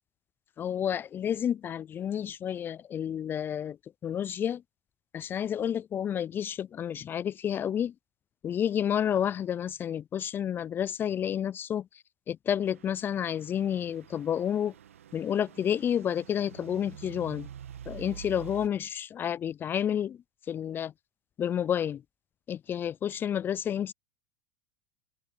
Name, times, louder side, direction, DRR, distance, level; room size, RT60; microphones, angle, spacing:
voice 1, 0.6-4.6 5.1-7.9 8.4-11.9 12.3-14.7 15.1-17.5 17.9-20.2 20.5-20.9 21.4-22.0 22.5-23.9, left 9 dB, 30° left, 0.4 m, -30 dB
Truck / Idling, 12.6-18.7, right 9 dB, 85° right, 1.5 m, -47 dB
open air
hypercardioid pair, 95°, 7 cm